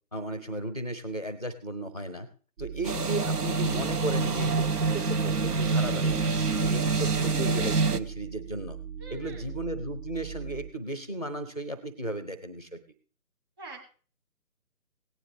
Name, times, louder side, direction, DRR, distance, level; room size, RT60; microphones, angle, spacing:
voice 1, 0.1-2.3 2.6-6.2 6.5-8.8 9.1-12.8, right 1 dB, 25° left, 11 dB, 0.5 m, -35 dB
sound 1, 2.6-10.7, right 8 dB, 50° right, 1.0 m, -41 dB
sound 2, 2.8-8.0, right 4 dB, 85° right, 0.9 m, -26 dB
voice 2, 9.0-9.5 13.6-13.8, right 3 dB, 15° right, 0 dB, 1.8 m, -44 dB
17.5 x 9.7 x 3.1 m, 0.39 s
figure-of-eight pair, 150°, 45 cm